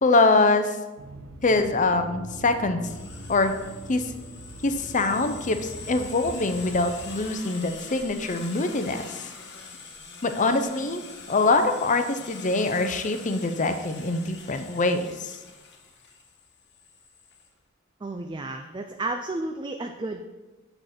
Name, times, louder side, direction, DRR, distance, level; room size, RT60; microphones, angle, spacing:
voice 1, 0.0-0.8 1.4-2.8 3.3-3.5 3.9-4.1 4.6-9.2 10.2-11.0 11.3-15.3, left 3 dB, 35° left, 8 dB, 0.7 m, -24 dB
Accelerating revving vroom, 1.0-7.2, right 1 dB, 90° right, 1.1 m, -42 dB
sound 1, 2.8-17.5, left 4 dB, 50° left, 1.3 m, -44 dB
voice 2, 18.0-20.3, right 2 dB, 20° right, 5 dB, 0.4 m, -32 dB
8.6 x 6.6 x 4.3 m, 1.1 s
head